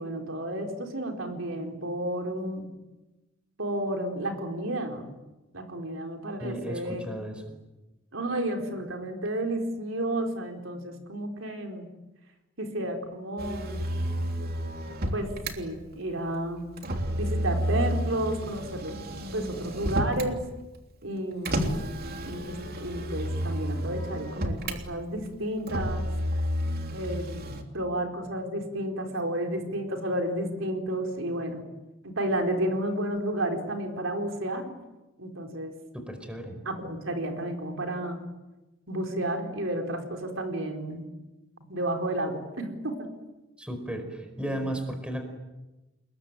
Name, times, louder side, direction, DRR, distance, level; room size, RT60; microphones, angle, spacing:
voice 1, 0.0-2.7 3.6-5.1 5.5-7.0 8.1-11.9 12.6-13.8 15.1-16.7 17.1-19.0 19.3-20.4 21.0-21.9 22.2-26.1 26.9-31.6 32.0-34.8 35.2-35.7 36.7-38.2 38.9-41.1 41.7-43.1, right 1 dB, 70° right, 3 dB, 4.5 m, -31 dB
voice 2, 6.4-7.6 35.9-36.6 43.6-45.3, right 1 dB, 5° right, 6 dB, 4.8 m, -35 dB
Motor vehicle (road), 13.4-15.5 16.8-20.4 21.4-24.8 25.7-27.6, equal, 50° right, 3.2 m, -31 dB
29.5 x 21.5 x 9.2 m, 1.1 s
head